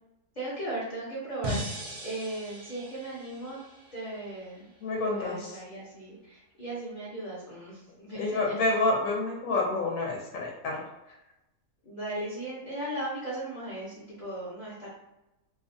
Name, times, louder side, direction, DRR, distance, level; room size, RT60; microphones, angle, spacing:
voice 1, 0.3-3.6 3.9-4.7 5.0-8.5 11.8-14.9, right 1 dB, 50° left, -8 dB, 0.5 m, -37 dB
sound 1, 1.4-4.6, right 1 dB, 55° right, 0.5 m, -38 dB
voice 2, 4.8-5.5 8.1-10.8, left 2 dB, 70° left, -2 dB, 0.9 m, -28 dB
2.7 x 2.1 x 2.5 m, 0.95 s
omnidirectional pair, 1.6 m